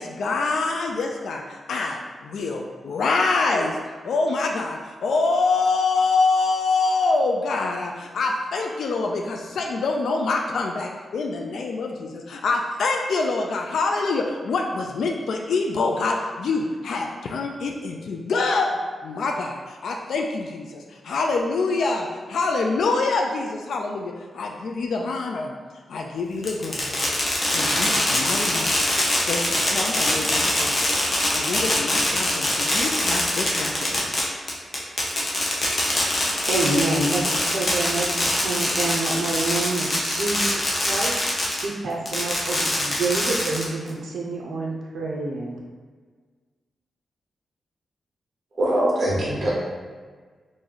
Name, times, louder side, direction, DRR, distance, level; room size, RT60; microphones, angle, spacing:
voice 1, 0.0-3.8 4.0-25.5 25.9-27.0 27.5-34.1, left 3 dB, 80° left, 1 dB, 0.3 m, -25 dB
Fireworks, 26.4-41.6 42.1-43.9, left 1 dB, 35° left, 0.7 m, -23 dB
voice 2, 36.5-41.1 41.6-45.6, right 2 dB, 90° right, -2 dB, 0.5 m, -27 dB
voice 3, 48.6-49.5, right 1 dB, 45° right, -5 dB, 1.0 m, -22 dB
3.0 x 2.6 x 3.8 m, 1.5 s
wide cardioid pair, 130°, 0 cm